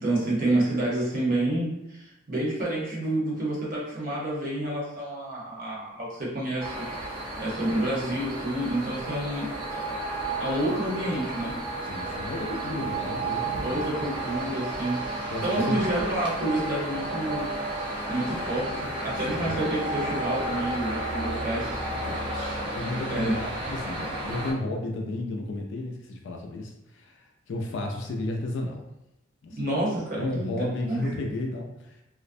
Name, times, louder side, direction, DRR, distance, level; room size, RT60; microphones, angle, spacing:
voice 1, 0.0-6.8 7.4-10.0 10.4-11.5 13.6-15.0 15.4-17.5 18.1-21.8 22.3-22.5 23.1-23.3 29.6-30.5 30.9-31.0, right 1 dB, 45° right, -5 dB, 0.8 m, -29 dB
sound 1, 6.6-24.5, right 1 dB, 25° right, 0.4 m, -32 dB
voice 2, 7.6-8.0 11.9-14.1 15.3-15.9 19.3-19.5 22.1-28.8 29.4-29.7 30.2-32.0, left 2 dB, 65° left, 2 dB, 0.4 m, -33 dB
2.4 x 2.0 x 2.5 m, 0.87 s
head